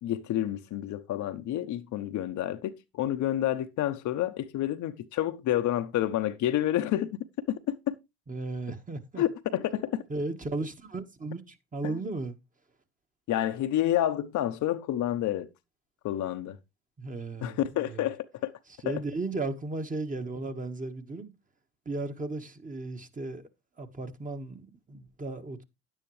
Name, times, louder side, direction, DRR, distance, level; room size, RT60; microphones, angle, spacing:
voice 1, 0.0-7.2 7.7-7.8 9.2-10.0 11.8-11.9 13.3-15.5 16.0-16.6 17.4-18.5 18.8-19.0, left 12 dB, 60° left, 0.9 m, -29 dB
voice 2, 8.3-9.2 10.1-12.4 17.0-17.6 17.8-18.1 18.8-21.3 21.8-23.4 23.8-25.6, right 3 dB, 25° right, 1.5 m, -35 dB
9.9 x 9.1 x 3.2 m
hypercardioid pair, 70°, 33 cm